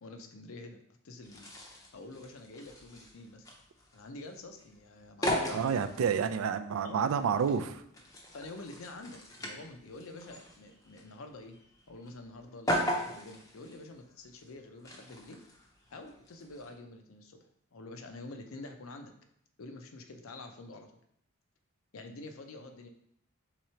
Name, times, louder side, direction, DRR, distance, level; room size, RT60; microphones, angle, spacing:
voice 1, 0.0-1.5 1.9-3.5 3.9-5.7 6.8-7.0 8.3-11.5 11.9-15.4 15.9-19.1 19.6-20.9 21.9-22.9, left 2 dB, 80° left, 5 dB, 0.6 m, -47 dB
sound 1, 1.2-16.7, equal, 15° left, 0.5 m, -39 dB
voice 2, 5.5-7.8, right 7 dB, 85° right, 10 dB, 0.3 m, -29 dB
3.8 x 3.0 x 4.3 m, 0.71 s
head